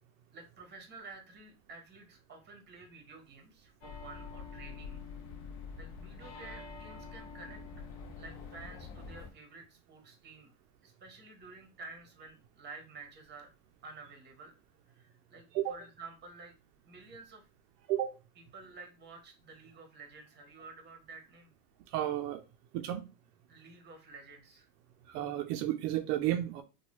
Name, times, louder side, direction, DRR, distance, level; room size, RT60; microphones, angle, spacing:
voice 1, 0.3-5.1 5.8-7.6 8.2-10.5 10.8-13.5 13.8-14.5 14.9-16.5 16.9-17.5 18.4-21.5 23.5-24.7, right 3 dB, 20° right, 4 dB, 0.9 m, -51 dB
sound 1, 3.8-9.3, left 5 dB, 50° left, 0.8 m, -46 dB
voice 2, 21.9-22.4 22.7-23.0 25.1-26.6, right 13 dB, 70° right, 7 dB, 0.5 m, -32 dB
3.0 x 2.2 x 3.0 m, 0.28 s
supercardioid pair, 125°, 49 cm